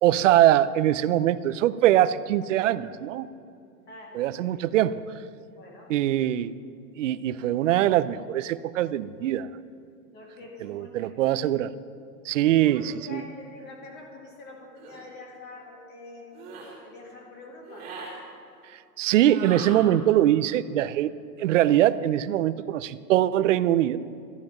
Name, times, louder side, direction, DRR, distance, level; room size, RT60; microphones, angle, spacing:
voice 1, 0.0-3.3 4.1-5.0 5.9-6.5 7.0-9.5 10.6-11.7 12.2-13.2 19.0-21.1 21.4-24.0, right 12 dB, 55° right, 16 dB, 0.5 m, -22 dB
voice 2, 3.9-4.3 5.6-6.0 10.1-11.2 12.7-16.4 16.8-18.0, left 2 dB, 20° left, 0 dB, 2.1 m, -45 dB
sound 1, 14.7-15.0 16.3-16.7 17.6-18.1 19.2-19.8, right 4 dB, 20° right, 3.6 m, -40 dB
14.0 x 10.5 x 5.9 m, 2.5 s
hypercardioid pair, 155°, 47 cm